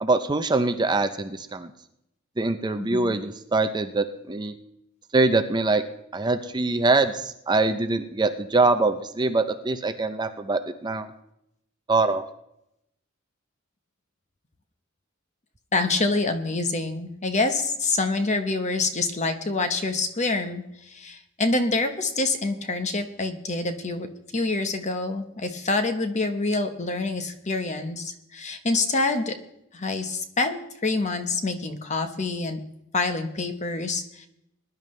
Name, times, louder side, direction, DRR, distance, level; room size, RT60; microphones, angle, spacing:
voice 1, 0.0-1.7 2.4-4.5 5.1-5.8 6.1-11.1 11.9-12.2, right 3 dB, 20° right, 8 dB, 0.6 m, -23 dB
voice 2, 2.8-3.1 15.7-24.1 24.3-29.3 29.7-32.6 32.9-34.3, left 3 dB, 35° left, 7 dB, 1.1 m, -26 dB
21.0 x 10.5 x 3.3 m, 0.79 s
head